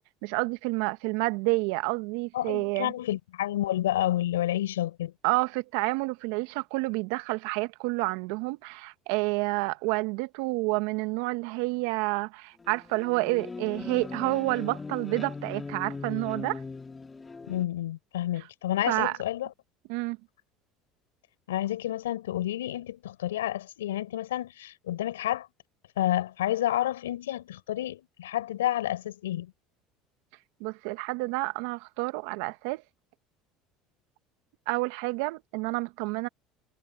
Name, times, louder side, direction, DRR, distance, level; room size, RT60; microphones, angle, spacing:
voice 1, 0.2-2.9 5.2-16.6 18.9-19.1 19.9-20.2 30.6-32.8 34.7-36.3, right 24 dB, 75° right, 1.3 m, -29 dB
voice 2, 2.3-5.1 17.5-19.5 21.5-25.5 26.0-29.5, left 13 dB, 90° left, 5.2 m, -30 dB
sound 1, 12.6-17.6, left 4 dB, 20° left, 2.3 m, -39 dB
hypercardioid pair, 80°, 0 cm